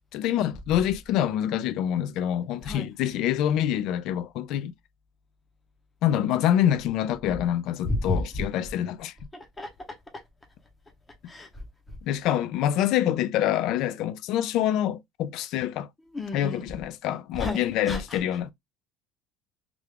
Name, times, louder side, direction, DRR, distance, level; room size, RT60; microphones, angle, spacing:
voice 1, 0.1-4.7 6.0-9.1 12.0-15.9 16.3-18.5, left 11 dB, 55° left, 0.3 m, -26 dB
voice 2, 7.8-8.4 9.6-9.7 11.3-11.6 16.1-16.7 17.3-18.2, left 2 dB, 15° left, 0.7 m, -31 dB
3.3 x 2.3 x 3.3 m
cardioid pair, 165°, 0 cm